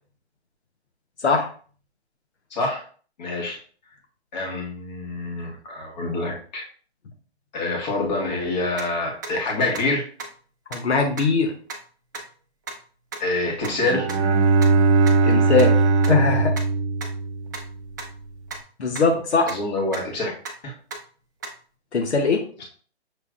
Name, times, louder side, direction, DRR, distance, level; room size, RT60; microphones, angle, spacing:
voice 1, 2.5-2.8 3.2-3.6 4.3-6.6 7.5-10.1 13.2-14.1 19.4-20.3 20.6-20.7 22.6-22.7, left 2 dB, 40° left, 0 dB, 1.7 m, -26 dB
sound 1, 8.8-8.9 9.2-9.3 9.7-9.8 10.2-10.3 10.7-10.8 11.2-11.3 11.7-11.8 12.1-12.2 12.7-12.8 13.1-13.2 13.6-13.7 14.1-14.2 14.6-14.7 15.1-15.2 15.6-15.7 16.0-16.1 16.6-16.7 17.0-17.1 17.5-17.6 18.0-18.1 18.5-18.6 19.0-19.1 19.5-19.6 19.9-20.0 20.5-20.6 20.9-21.0 21.4-21.5, right 4 dB, 20° right, 0.4 m, -33 dB
voice 2, 10.7-11.5 15.2-15.7 16.1-16.5 18.8-19.5 21.9-22.4, left 4 dB, 85° left, 3 dB, 1.0 m, -20 dB
Bowed string instrument, 13.7-17.8, right 3 dB, 85° right, 0.6 m, -19 dB
6.5 x 3.1 x 2.5 m, 0.43 s
hypercardioid pair, 150°, 33 cm